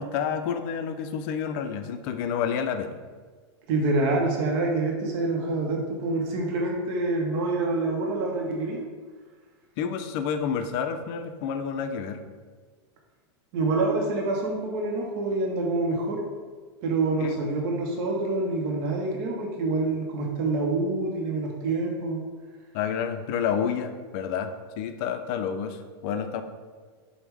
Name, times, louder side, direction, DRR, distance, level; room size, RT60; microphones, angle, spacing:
voice 1, 0.0-3.0 9.8-12.2 17.2-17.4 22.7-26.4, left 7 dB, 50° left, 8 dB, 0.4 m, -29 dB
voice 2, 3.7-8.8 13.5-16.2 16.8-22.2, right 2 dB, 50° right, 0 dB, 0.7 m, -26 dB
4.4 x 2.1 x 3.4 m, 1.5 s
hypercardioid pair, 120°, 14 cm